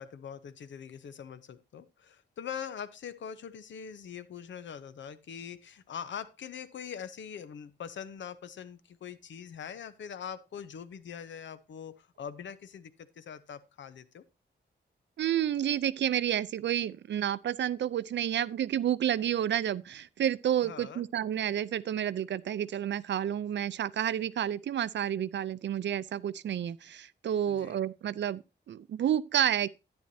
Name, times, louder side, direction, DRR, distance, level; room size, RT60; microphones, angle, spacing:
voice 1, 0.0-14.2 20.6-21.0 27.5-27.8, left 7 dB, 85° left, 0.8 m, -43 dB
voice 2, 15.2-29.7, right 10 dB, 70° right, 0.5 m, -30 dB
10.5 x 9.8 x 2.7 m
wide cardioid pair, 105°, 19 cm